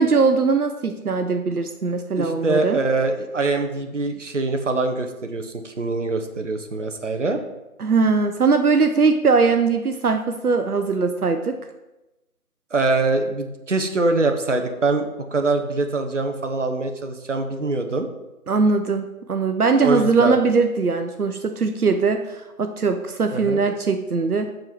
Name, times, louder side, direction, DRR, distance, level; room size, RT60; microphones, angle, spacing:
voice 1, 0.0-2.8 7.8-11.6 18.5-24.5, right 4 dB, 80° right, 7 dB, 0.8 m, -20 dB
voice 2, 2.1-7.4 12.7-18.1 19.8-20.4 23.3-23.6, right 3 dB, 55° right, 5 dB, 1.0 m, -23 dB
7.4 x 5.3 x 4.5 m, 0.99 s
figure-of-eight pair, 165°, 45 cm